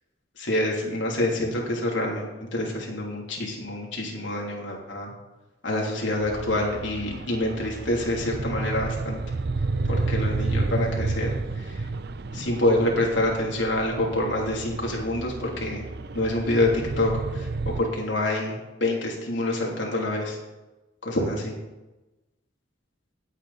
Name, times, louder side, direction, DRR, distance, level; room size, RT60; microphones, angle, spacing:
voice 1, 0.4-2.3 2.5-5.1 5.6-9.2 9.9-11.4 11.6-11.8 12.3-15.8 16.1-20.4 21.0-21.5, left 1 dB, 75° left, -2 dB, 3.2 m, -26 dB
sound 1, 6.2-17.8, right 3 dB, 55° right, 0.6 m, -31 dB
17.5 x 8.4 x 4.2 m, 1.1 s
head